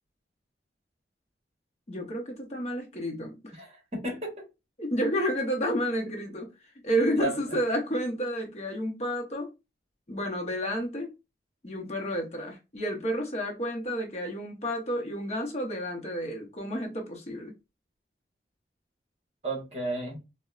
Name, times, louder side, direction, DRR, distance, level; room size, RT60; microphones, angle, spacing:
voice 1, 1.9-3.4 4.8-6.5 6.8-9.5 10.1-11.1 11.6-17.5, equal, 40° left, 0.7 m, -30 dB
voice 2, 3.5-4.5 7.2-7.4 19.4-20.2, right 2 dB, 35° right, 1.2 m, -33 dB
3.9 x 2.1 x 2.3 m
head